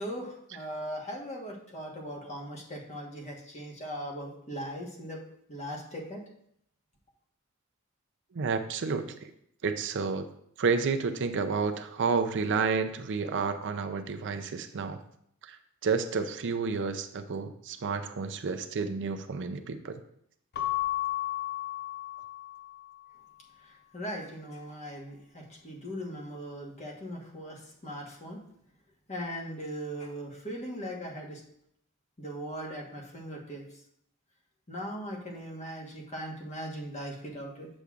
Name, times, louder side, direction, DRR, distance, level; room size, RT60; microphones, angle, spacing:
voice 1, 0.0-5.2 5.5-6.2 23.6-28.4 29.1-31.4 32.2-33.6 34.7-37.7, equal, 30° left, 0 dB, 1.3 m, -39 dB
voice 2, 8.3-9.3 9.6-10.3 10.6-15.0 15.4-15.6 15.8-20.0, right 5 dB, 55° right, 8 dB, 0.5 m, -30 dB
Keyboard (musical) / Bell, 20.5-23.0, left 15 dB, 50° left, 0.5 m, -33 dB
8.0 x 7.0 x 2.5 m, 0.71 s
head